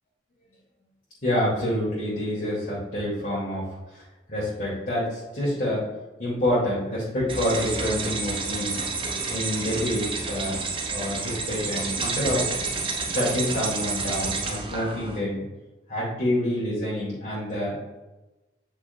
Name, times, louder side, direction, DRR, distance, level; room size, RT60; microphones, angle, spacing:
voice 1, 1.2-3.6 3.9-4.0 4.3-5.8 6.2-8.8 9.3-10.5 10.9-12.5 13.1-15.4 15.9-18.0, left 1 dB, 50° left, -9 dB, 2.1 m, -27 dB
sound 1, 7.3-15.2, right 4 dB, 30° right, 0.6 m, -30 dB
7.9 x 5.6 x 2.2 m, 1.1 s
head